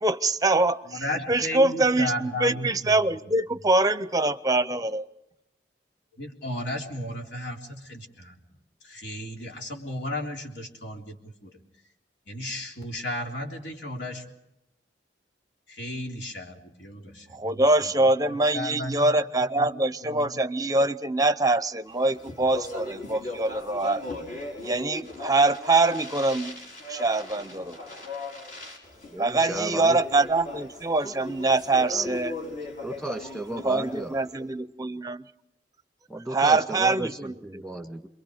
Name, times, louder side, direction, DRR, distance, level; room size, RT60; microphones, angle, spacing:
voice 1, 0.0-1.0 1.3-5.1 17.3-24.0 24.6-26.6 26.9-27.8 29.2-32.4 33.6-35.2 36.3-37.6, right 2 dB, 20° right, 12 dB, 0.8 m, -24 dB
voice 2, 0.9-3.6 6.2-8.4 8.8-11.5 12.3-14.3 15.7-17.5 17.8-19.2 19.6-20.4, left 1 dB, 70° left, 0 dB, 3.6 m, -35 dB
Speech, 22.0-34.4, left 2 dB, 50° left, 5.5 m, -38 dB
voice 3, 29.1-30.0 31.9-32.2 32.8-34.1 36.1-38.1, right 2 dB, 5° left, 4 dB, 1.7 m, -34 dB
27.5 x 23.0 x 5.1 m, 0.85 s
head